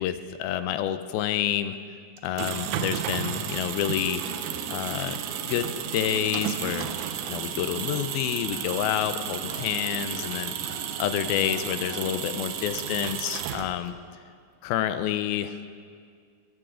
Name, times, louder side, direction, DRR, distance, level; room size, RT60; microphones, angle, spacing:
voice 1, 0.0-1.8 2.2-4.3 4.7-6.9 7.3-10.5 11.0-13.9 14.6-15.6, left 11 dB, 85° left, 10 dB, 2.5 m, -28 dB
sound 1, 2.2-14.0, right 10 dB, 80° right, 1.7 m, -33 dB
sound 2, 3.0-12.0, left 2 dB, 55° left, 1.3 m, -51 dB
sound 3, 4.1-12.8, left 1 dB, 5° left, 3.6 m, -45 dB
19.5 x 17.5 x 3.8 m, 2.1 s
omnidirectional pair, 4.4 m